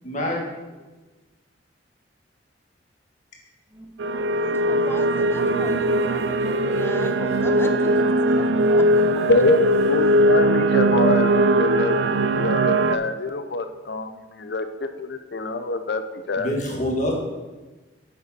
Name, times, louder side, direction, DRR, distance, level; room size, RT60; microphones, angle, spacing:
voice 1, 0.0-0.4 16.4-17.1, left 1 dB, 40° left, -1 dB, 1.7 m, -25 dB
sound 1, 3.7-11.3, right 1 dB, 15° right, 1.5 m, -45 dB
sound 2, 4.0-13.0, right 1 dB, 80° right, 0.4 m, -20 dB
voice 2, 4.3-7.9 8.4-8.5 8.8-8.9, left 1 dB, 15° left, 6 dB, 0.6 m, -38 dB
voice 3, 9.3-16.5, left 2 dB, 60° left, 9 dB, 0.6 m, -25 dB
8.6 x 6.9 x 4.3 m, 1.2 s
head